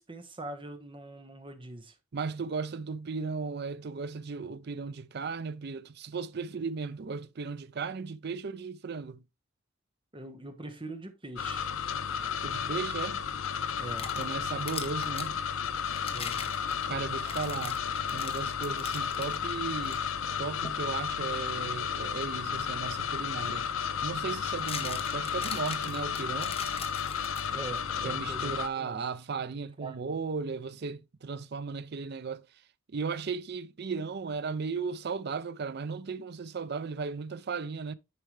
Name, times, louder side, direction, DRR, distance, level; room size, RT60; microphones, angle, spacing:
voice 1, 0.0-1.9 10.1-11.7 13.8-14.1 16.1-16.4 27.5-29.1 29.8-30.2, right 2 dB, 25° right, 1.2 m, -43 dB
voice 2, 2.1-9.2 12.4-13.3 14.2-15.4 16.9-17.8 18.1-20.1 20.4-23.7 24.0-26.6 28.0-32.4 32.9-37.9, right 5 dB, 55° right, 0.5 m, -36 dB
sound 1, 11.4-28.7, left 7 dB, 90° left, 0.6 m, -33 dB
sound 2, 13.7-15.3 15.9-19.4 19.8-20.0 20.6-20.9 23.0-23.1 24.3-27.8, left 6 dB, 30° left, 0.9 m, -41 dB
9.9 x 4.6 x 3.2 m
head